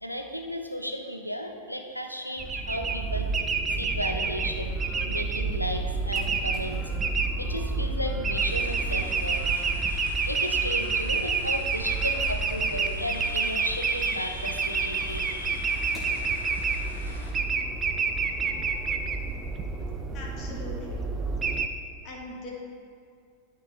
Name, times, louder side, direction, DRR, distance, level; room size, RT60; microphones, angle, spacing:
voice 1, 0.0-6.9 7.4-15.7, equal, 90° left, 4 dB, 0.7 m, -34 dB
sound 1, 2.1-4.9 5.3-17.1 17.4-18.2, left 1 dB, 15° left, 1.7 m, -50 dB
sound 2, 2.4-21.7, right 4 dB, 20° right, 0.5 m, -28 dB
sound 3, 8.3-17.3, left 2 dB, 65° left, 1.1 m, -46 dB
voice 2, 20.1-21.1 22.0-22.5, left 2 dB, 35° left, -2 dB, 1.7 m, -41 dB
12.5 x 4.5 x 3.2 m, 2.3 s
figure-of-eight pair, 90°, 0 cm